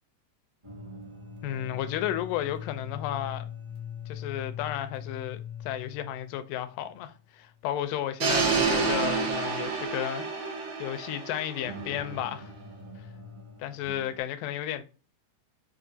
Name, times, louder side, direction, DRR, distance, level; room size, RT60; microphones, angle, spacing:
sound 1, 0.6-7.2 7.5-7.6 8.2-8.3 11.6-14.2, left 5 dB, 30° right, 1.0 m, -41 dB
voice 1, 1.4-3.5 4.1-10.3 10.8-12.5 13.6-14.8, left 12 dB, 85° left, 2.2 m, -33 dB
sound 2, 8.2-12.2, right 4 dB, 85° right, 2.8 m, -28 dB
7.2 x 2.5 x 2.6 m
omnidirectional pair, 3.8 m